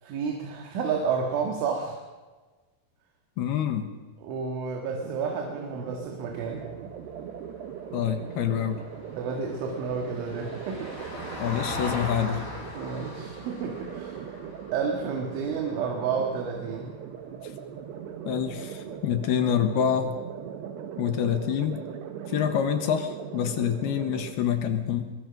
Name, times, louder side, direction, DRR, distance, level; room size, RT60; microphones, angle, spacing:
voice 1, 0.0-2.0 4.2-6.7 9.2-11.2 12.7-14.3 14.7-16.9, right 5 dB, 85° right, 2 dB, 4.3 m, -31 dB
voice 2, 3.4-3.9 7.9-8.8 11.4-12.5 18.2-20.2 21.0-21.8 22.3-25.2, left 9 dB, 70° left, 7 dB, 3.0 m, -26 dB
sound 1, 4.9-24.3, right 8 dB, 70° right, 3.3 m, -40 dB
Vehicle, 6.4-16.9 19.2-19.3, left 1 dB, 20° left, 4.2 m, -41 dB
23.5 x 23.0 x 5.3 m, 1.3 s
omnidirectional pair, 5.4 m